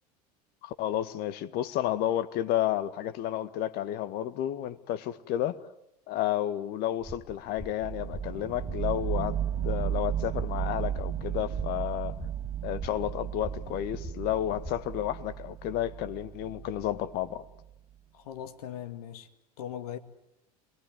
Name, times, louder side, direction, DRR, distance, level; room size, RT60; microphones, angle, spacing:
voice 1, 0.6-5.6 6.1-9.4 9.6-12.1 12.6-17.4, left 12 dB, 50° left, 1.7 m, -31 dB
sound 1, 7.0-15.1, equal, 5° right, 1.9 m, -45 dB
sound 2, 7.8-17.6, right 10 dB, 35° right, 2.7 m, -35 dB
voice 2, 18.1-19.3 19.6-20.0, left 10 dB, 70° left, 2.1 m, -39 dB
28.0 x 22.0 x 9.3 m
hypercardioid pair, 80°, 20 cm